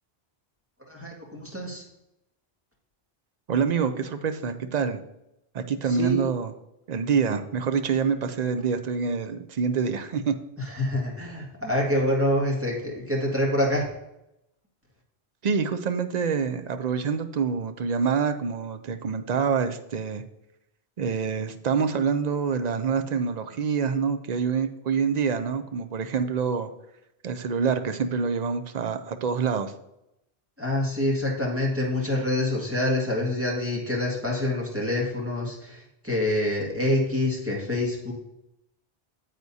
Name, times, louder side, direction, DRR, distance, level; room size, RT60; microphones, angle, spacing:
voice 1, 0.9-1.8 6.0-6.2 10.7-13.8 30.6-35.8 36.0-38.1, left 1 dB, 15° right, -4 dB, 2.0 m, -26 dB
voice 2, 3.5-5.0 5.5-6.5 6.9-10.3 15.4-20.2 21.0-26.7 27.2-29.7, right 6 dB, 50° right, 8 dB, 0.6 m, -26 dB
9.4 x 7.8 x 2.8 m, 0.86 s
omnidirectional pair, 1.0 m